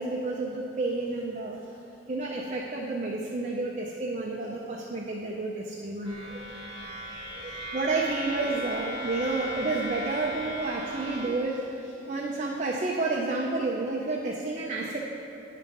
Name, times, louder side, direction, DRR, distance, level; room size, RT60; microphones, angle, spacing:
voice 1, 0.0-1.6 2.1-6.4 7.3-15.0, right 3 dB, 35° right, -2 dB, 0.5 m, -30 dB
sound 1, 6.0-11.3, equal, 5° left, 1.4 m, -37 dB
10.0 x 3.7 x 5.3 m, 2.8 s
head